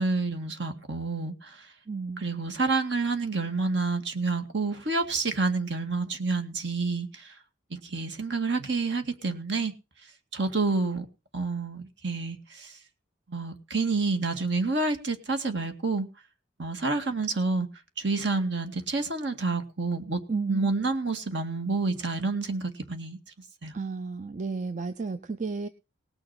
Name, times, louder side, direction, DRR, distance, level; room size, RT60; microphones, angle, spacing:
voice 1, 0.0-1.6 2.2-7.3 7.7-9.7 10.3-11.1 11.3-12.7 13.3-16.1 16.6-17.7 18.0-20.2 20.5-23.2 23.6-23.7, right 3 dB, 60° right, 7 dB, 2.1 m, -28 dB
voice 2, 1.9-2.2 20.3-20.7 23.7-25.7, right 4 dB, 40° right, 10 dB, 0.6 m, -32 dB
19.0 x 6.4 x 5.8 m, 0.31 s
head